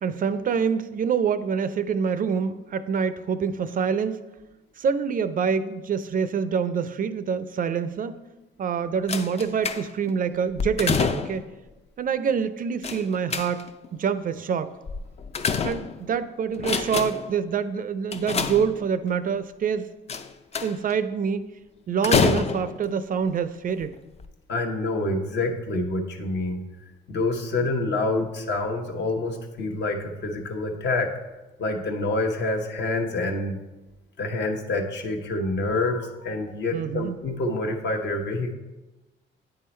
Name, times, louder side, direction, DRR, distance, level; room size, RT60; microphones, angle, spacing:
voice 1, 0.0-4.2 4.8-8.2 8.6-11.5 12.0-14.8 15.6-19.9 20.6-21.5 21.9-24.0 36.7-37.2, right 6 dB, 45° right, 12 dB, 0.4 m, -26 dB
sound 1, 9.1-10.1 10.6-11.5 12.8-13.9 14.9-16.2 16.5-17.4 18.1-19.1 20.1-20.9 22.0-22.9 23.7-23.8 24.2-24.3, left 6 dB, 30° left, 0.4 m, -27 dB
voice 2, 24.5-26.6 27.1-31.1 31.6-33.6 34.2-38.5, left 2 dB, 60° left, 3 dB, 1.0 m, -27 dB
8.8 x 3.7 x 4.3 m, 1.1 s
cardioid pair, 90°, 20 cm